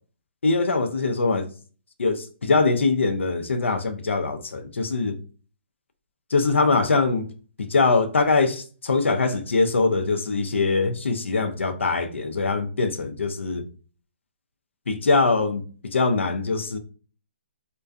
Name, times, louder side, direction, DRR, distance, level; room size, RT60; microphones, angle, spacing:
voice 1, 0.4-1.5 2.0-5.2 6.3-7.3 7.6-13.6 14.9-16.8, left 3 dB, 85° left, 0.4 m, -22 dB
2.5 x 2.2 x 2.3 m
hypercardioid pair, 140°, 6 cm